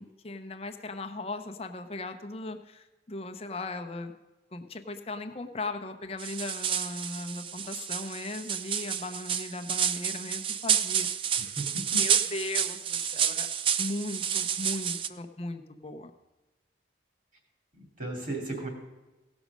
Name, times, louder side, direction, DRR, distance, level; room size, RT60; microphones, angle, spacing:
voice 1, 0.0-4.1 4.5-11.1 12.0-13.5 13.8-16.1, left 2 dB, 30° left, 6 dB, 0.7 m, -37 dB
sound 1, 6.2-15.1, right 8 dB, 30° right, 0.3 m, -30 dB
voice 2, 11.4-12.0 17.8-18.7, right 2 dB, 45° right, 1 dB, 2.7 m, -36 dB
17.0 x 6.2 x 5.3 m, 1.1 s
head